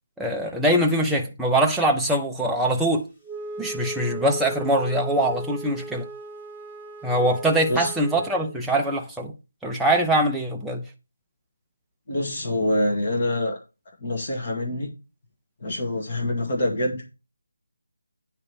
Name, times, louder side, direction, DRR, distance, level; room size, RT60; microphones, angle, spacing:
voice 1, 0.2-3.1 3.6-6.1 7.0-9.3 9.6-10.8, right 1 dB, ahead, 0.6 m, -23 dB
Wind instrument woodwind instrument, 3.2-8.5, right 1 dB, 15° left, 1.2 m, -37 dB
voice 2, 12.1-13.6 14.0-14.9 15.6-17.1, left 1 dB, 35° left, 2.0 m, -25 dB
9.6 x 3.2 x 6.9 m
figure-of-eight pair, 170°, 0 cm